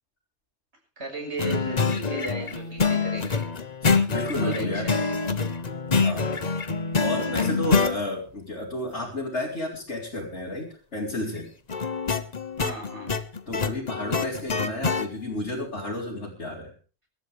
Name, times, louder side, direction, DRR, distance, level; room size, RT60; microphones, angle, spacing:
voice 1, 1.0-3.4 4.4-5.2 12.6-13.1, right 2 dB, 75° right, 2 dB, 6.2 m, -35 dB
sound 1, 1.4-8.0 11.7-15.1, left 4 dB, 40° left, 1.1 m, -25 dB
voice 2, 3.8-4.9 6.0-6.3 7.0-11.5 13.5-16.7, left 1 dB, 80° left, -4 dB, 4.3 m, -32 dB
24.5 x 12.5 x 3.5 m, 0.35 s
omnidirectional pair, 1.2 m